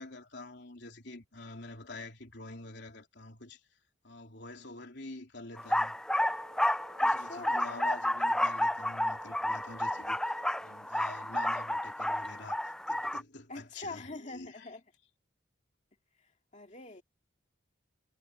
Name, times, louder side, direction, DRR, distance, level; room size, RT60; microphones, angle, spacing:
voice 1, 0.0-3.6 4.0-6.0 7.0-10.3 10.6-14.7, left 2 dB, 60° left, 3.7 m, -47 dB
sound 1, 5.6-13.2, left 1 dB, 5° left, 0.4 m, -31 dB
sound 2, 6.0-11.0, right 2 dB, 25° right, 4.6 m, -55 dB
voice 2, 7.0-7.7 13.5-14.8 16.2-17.0, left 2 dB, 35° left, 2.5 m, -44 dB
head